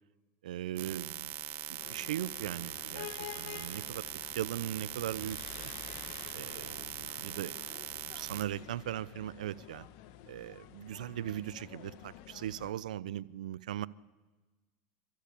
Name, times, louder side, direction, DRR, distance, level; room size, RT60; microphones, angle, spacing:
voice 1, 0.4-1.3 1.7-3.1 3.4-4.1 4.4-5.7 6.3-7.6 8.1-9.9 10.3-13.9, right 12 dB, 85° right, 0.7 m, -39 dB
sound 1, 0.8-8.4, right 14 dB, 50° right, 1.7 m, -41 dB
sound 2, 1.8-12.7, left 13 dB, 60° left, 1.5 m, -50 dB
28.5 x 13.5 x 8.5 m
hypercardioid pair, 110°, 4 cm